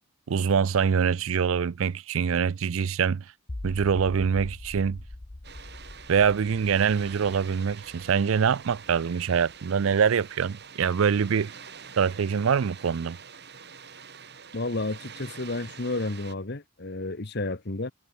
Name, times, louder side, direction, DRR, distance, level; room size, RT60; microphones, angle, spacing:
voice 1, 0.3-3.2 3.6-5.0 6.1-11.5 12.0-13.2, right 6 dB, 65° right, 0.4 m, -24 dB
sound 1, 3.5-9.6, left 1 dB, 25° left, 0.7 m, -42 dB
Water, 5.4-16.3, right 6 dB, 50° right, 5.5 m, -46 dB
voice 2, 14.5-17.9, left 2 dB, 50° left, 1.3 m, -31 dB
head